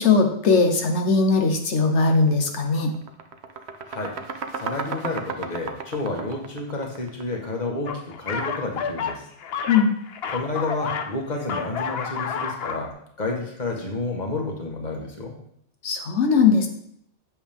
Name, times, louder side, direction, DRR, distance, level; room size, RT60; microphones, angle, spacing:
voice 1, 0.0-2.9 9.7-9.9 15.8-16.7, left 4 dB, 85° left, 4 dB, 1.3 m, -19 dB
sound 1, 2.1-2.3 2.6-7.6, right 5 dB, 70° right, 1.1 m, -34 dB
voice 2, 3.9-4.2 4.6-9.2 10.3-12.9 13.2-15.3, left 2 dB, 40° left, 1 dB, 1.6 m, -30 dB
sound 2, 7.9-11.2 11.4-12.9, left 6 dB, 65° left, 0.9 m, -30 dB
8.4 x 7.7 x 3.6 m, 0.70 s
omnidirectional pair, 1.2 m